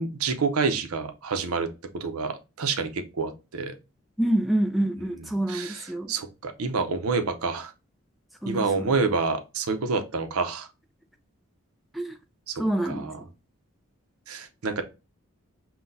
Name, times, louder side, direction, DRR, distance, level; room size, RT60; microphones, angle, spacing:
voice 1, 0.0-1.7 1.9-3.7 5.5-7.7 8.5-10.7 12.5-13.2 14.3-14.8, right 4 dB, 90° right, 0.6 m, -28 dB
voice 2, 4.2-6.1 8.4-8.9 11.9-12.2 12.6-13.1, right 1 dB, ahead, 0.3 m, -27 dB
5.8 x 2.2 x 2.6 m
head